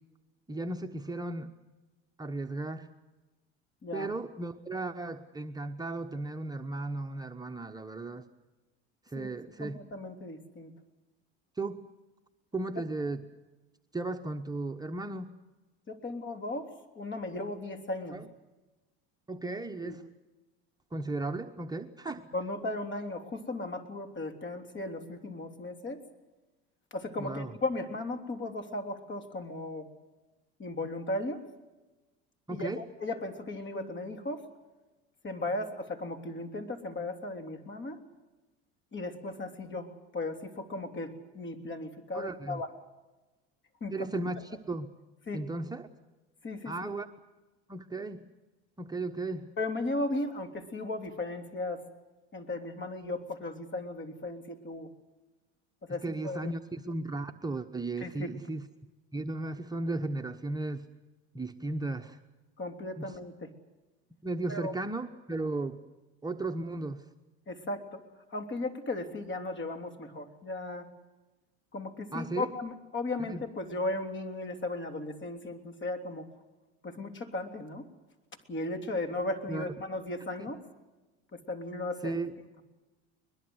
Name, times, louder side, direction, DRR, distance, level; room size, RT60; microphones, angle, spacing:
voice 1, 0.5-1.5 2.2-2.9 3.9-8.2 9.1-9.8 11.6-11.9 12.5-13.2 13.9-15.3 18.1-18.3 19.3-20.0 20.9-22.3 27.2-27.5 32.5-32.8 42.1-42.6 43.9-44.9 45.3-45.9 46.6-47.1 47.7-48.3 48.8-49.5 55.9-58.6 59.1-60.9 61.3-62.2 63.0-63.2 64.2-65.8 66.2-67.0 72.1-72.5 73.2-73.4 79.5-79.7 82.0-82.3, right 2 dB, 10° right, 4 dB, 1.1 m, -35 dB
voice 2, 9.6-10.7 15.9-18.2 19.8-19.9 22.3-26.0 26.9-29.9 30.6-31.4 32.5-34.4 35.2-38.0 38.9-42.7 43.8-44.1 45.3-45.4 46.4-46.9 49.6-51.8 52.3-54.9 55.8-56.5 58.0-58.3 62.6-63.5 64.5-64.7 67.5-68.0 68.3-70.9 71.7-76.3 76.8-77.9 78.5-80.6 81.3-82.2, left 2 dB, 35° left, 7 dB, 3.4 m, -36 dB
22.0 x 22.0 x 8.0 m, 1.1 s
supercardioid pair, 90°, 34 cm